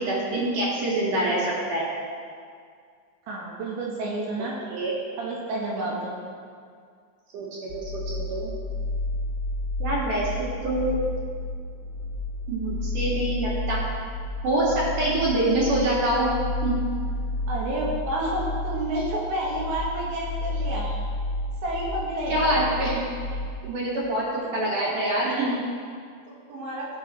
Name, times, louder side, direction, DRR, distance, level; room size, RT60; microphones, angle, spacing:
voice 1, 0.0-1.9 4.7-4.9 5.8-5.9 7.3-8.5 9.8-10.3 10.6-11.0 12.5-13.8 14.4-16.3 16.6-16.7 22.3-23.0 23.6-24.2 24.5-25.5, right 1 dB, 55° right, -6 dB, 2.8 m, -25 dB
voice 2, 3.3-4.5 5.2-6.1 17.5-20.9 21.6-22.4 24.4-24.5 24.8-25.2 26.3-26.9, right 1 dB, 75° right, -4 dB, 3.5 m, -30 dB
sound 1, 7.7-23.6, left 2 dB, 55° left, 2.6 m, -31 dB
15.5 x 6.7 x 4.3 m, 2.1 s
omnidirectional pair, 5.6 m